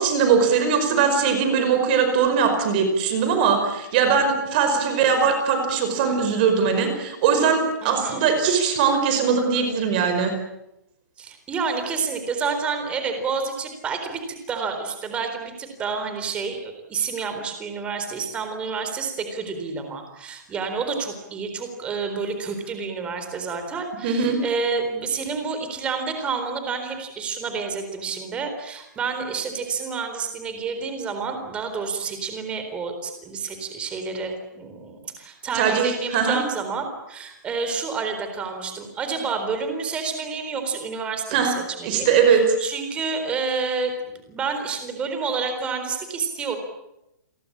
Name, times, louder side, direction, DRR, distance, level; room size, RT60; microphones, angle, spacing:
voice 1, 0.0-10.3 24.0-24.4 35.5-36.4 41.3-41.5 41.8-42.4, right 6 dB, 30° right, 6 dB, 5.2 m, -20 dB
voice 2, 7.8-8.2 11.2-14.2 14.5-43.9 44.3-46.6, right 5 dB, 10° right, 6 dB, 4.0 m, -29 dB
29.5 x 23.0 x 8.7 m, 0.88 s
hypercardioid pair, 170°, 10 cm